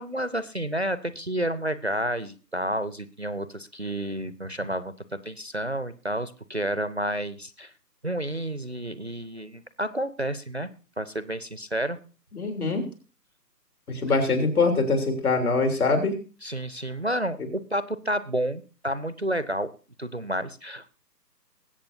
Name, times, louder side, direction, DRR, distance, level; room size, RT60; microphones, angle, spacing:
voice 1, 0.0-4.9 5.3-7.7 8.0-10.7 11.0-12.0 16.4-19.7 20.0-20.9, right 1 dB, 45° right, 14 dB, 0.4 m, -30 dB
voice 2, 12.3-12.8 13.9-16.1, left 3 dB, 60° left, 5 dB, 3.3 m, -23 dB
20.5 x 8.4 x 2.7 m, 0.36 s
figure-of-eight pair, 155°, 50 cm